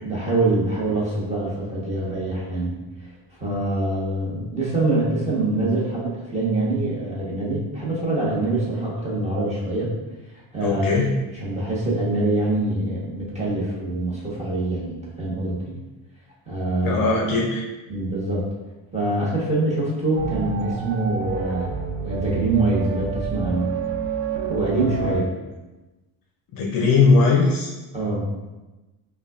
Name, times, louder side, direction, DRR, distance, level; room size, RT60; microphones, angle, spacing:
voice 1, 0.0-2.7 3.4-9.9 10.5-10.9 11.3-15.7 16.5-17.1 17.9-18.5 18.9-21.7 22.0-23.7 24.5-25.3 27.9-28.3, right 2 dB, 15° right, -7 dB, 1.1 m, -24 dB
voice 2, 10.6-11.1 16.8-17.6 26.5-27.7, left 4 dB, 45° left, -1 dB, 0.6 m, -19 dB
sound 1, 20.1-25.2, right 6 dB, 65° right, 0.6 m, -29 dB
5.4 x 2.3 x 2.4 m, 1.1 s
cardioid pair, 125°, 47 cm